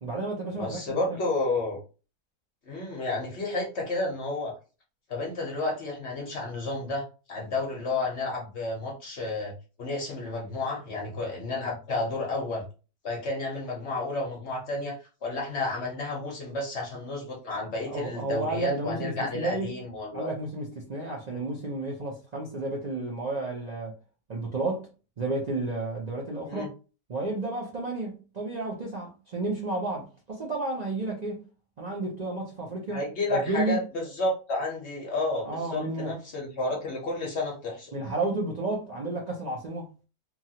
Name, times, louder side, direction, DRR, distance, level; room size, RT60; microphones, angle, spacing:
voice 1, 0.0-1.0 17.9-19.8 20.1-23.9 24.3-24.9 25.2-26.7 27.1-31.4 31.8-33.0 33.3-33.8 35.4-36.2 37.9-39.9, right 2 dB, 70° right, 0.4 m, -32 dB
voice 2, 0.6-1.8 2.7-4.5 5.1-9.5 9.8-12.6 13.0-15.0 15.2-20.3 21.3-21.4 26.4-26.7 32.9-37.9, left 2 dB, 50° left, 1.0 m, -31 dB
3.0 x 2.3 x 2.8 m
omnidirectional pair, 1.7 m